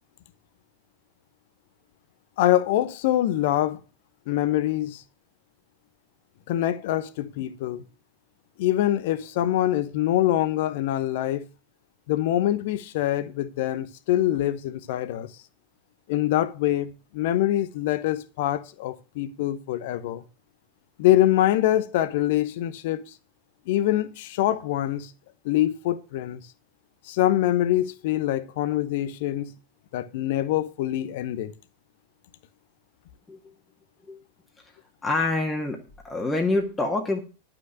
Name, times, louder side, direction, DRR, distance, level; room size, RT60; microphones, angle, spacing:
voice 1, 2.4-3.8 4.3-5.0 6.5-7.8 8.6-11.5 12.1-15.3 16.1-20.2 21.0-23.1 23.7-25.1 25.4-26.4 27.1-29.5 29.9-31.5, left 13 dB, 50° left, 0.9 m, -24 dB
voice 2, 35.0-37.2, left 2 dB, 15° left, 1.7 m, -26 dB
11.5 x 6.0 x 6.5 m
figure-of-eight pair, 90°, 0 cm